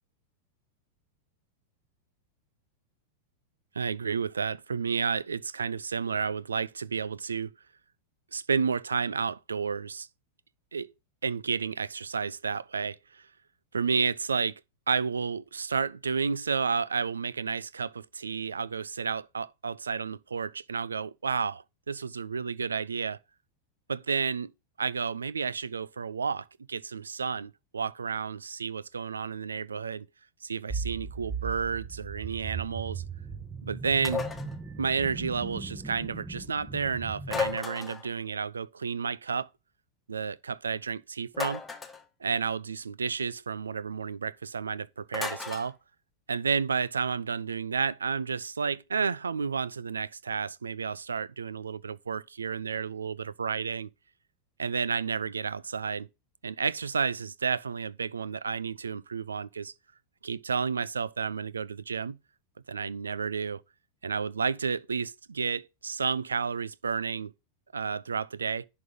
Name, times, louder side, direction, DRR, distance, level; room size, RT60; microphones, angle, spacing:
voice 1, 3.7-7.5 8.3-10.1 10.7-10.9 11.2-13.3 13.7-14.6 14.9-23.2 23.9-24.5 24.8-30.1 30.4-33.0 33.6-34.2 34.8-39.5 40.1-41.6 42.2-45.8 46.3-53.9 54.6-56.1 56.4-59.7 60.2-62.2 62.7-63.6 64.0-67.3 67.7-68.7, right 5 dB, 75° right, 0.4 m, -31 dB
sound 1, 30.7-37.6, right 5 dB, 10° right, 1.0 m, -38 dB
sound 2, 34.0-34.5 37.3-38.1 41.3-42.0 45.1-45.7, left 5 dB, 15° left, 1.3 m, -33 dB
10.5 x 3.7 x 5.9 m
figure-of-eight pair, 90°, 0 cm